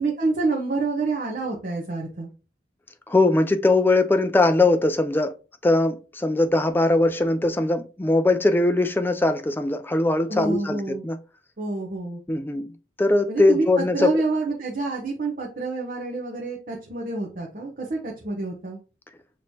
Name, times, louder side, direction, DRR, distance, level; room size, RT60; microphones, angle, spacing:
voice 1, 0.0-2.3 10.3-11.0 11.6-12.2 13.3-18.8, right 3 dB, 50° right, 0.8 m, -27 dB
voice 2, 3.1-5.3 5.6-11.2 12.3-12.7 13.0-14.2, left 2 dB, 10° left, 0.3 m, -21 dB
6.1 x 3.1 x 2.7 m
head